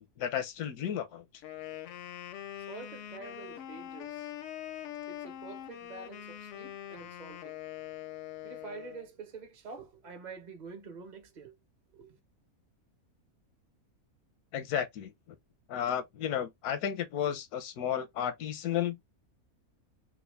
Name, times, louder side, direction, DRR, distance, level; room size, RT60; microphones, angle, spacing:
voice 1, 0.2-1.2 14.5-15.1 15.7-19.0, left 9 dB, 85° left, 1.2 m, -33 dB
Wind instrument woodwind instrument, 1.3-9.1, left 12 dB, 70° left, 0.8 m, -43 dB
voice 2, 2.7-4.3 5.1-7.6 8.4-11.5 11.9-12.2, right 4 dB, 35° right, 0.8 m, -47 dB
3.4 x 2.4 x 3.3 m
omnidirectional pair, 1.6 m